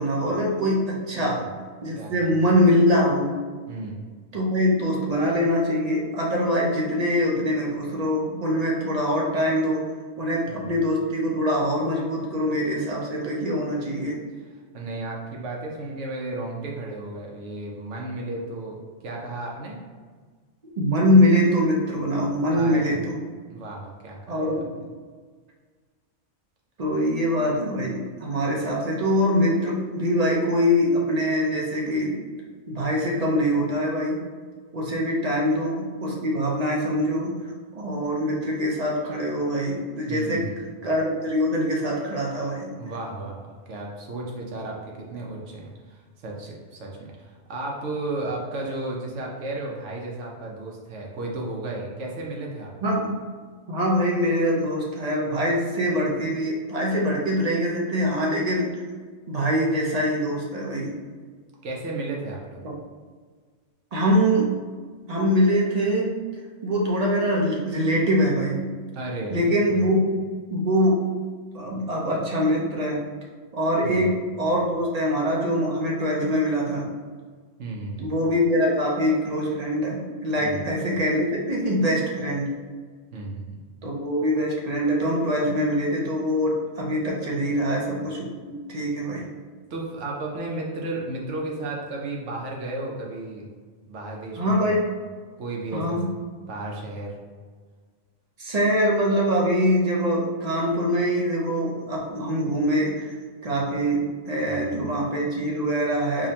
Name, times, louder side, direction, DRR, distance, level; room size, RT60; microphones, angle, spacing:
voice 1, 0.0-1.4 1.8-3.3 4.3-9.8 10.2-14.2 20.8-23.2 24.3-24.7 26.8-32.2 32.7-34.2 34.7-37.3 37.7-40.4 40.8-42.7 52.8-53.2 53.7-58.7 59.3-60.9 62.6-62.7 63.9-64.5 65.1-66.2 66.6-68.7 69.3-70.1 70.5-71.0 71.5-73.0 73.5-76.9 78.0-82.5 83.8-89.3 94.4-94.8 95.7-96.1 98.4-103.1 103.4-106.3, equal, 45° right, -3 dB, 0.6 m, -23 dB
voice 2, 1.1-1.5 1.9-2.5 3.7-4.0 10.5-10.9 14.7-18.8 19.0-19.8 22.5-23.0 23.5-24.5 34.9-35.0 40.1-40.7 42.8-44.8 45.1-52.7 61.6-62.6 69.0-69.4 69.7-69.8 73.8-74.2 77.6-78.1 80.4-80.7 83.1-83.6 89.7-93.5 93.9-94.7 95.4-96.0 96.5-97.1 104.4-104.8, right 2 dB, 75° right, -1 dB, 1.0 m, -34 dB
4.9 x 2.2 x 2.7 m, 1.5 s
omnidirectional pair, 1.3 m